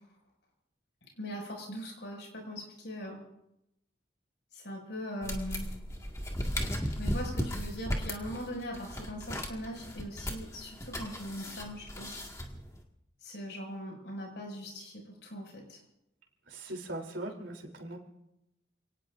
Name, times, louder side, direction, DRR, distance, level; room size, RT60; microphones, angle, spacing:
voice 1, 1.2-3.2 4.5-5.7 6.6-12.1 13.2-15.8, equal, 65° left, 1 dB, 6.5 m, -41 dB
sound 1, 5.2-12.8, equal, 15° left, 1.9 m, -36 dB
voice 2, 16.5-18.0, right 1 dB, 75° right, 1 dB, 3.5 m, -40 dB
29.0 x 18.5 x 2.6 m, 0.85 s
head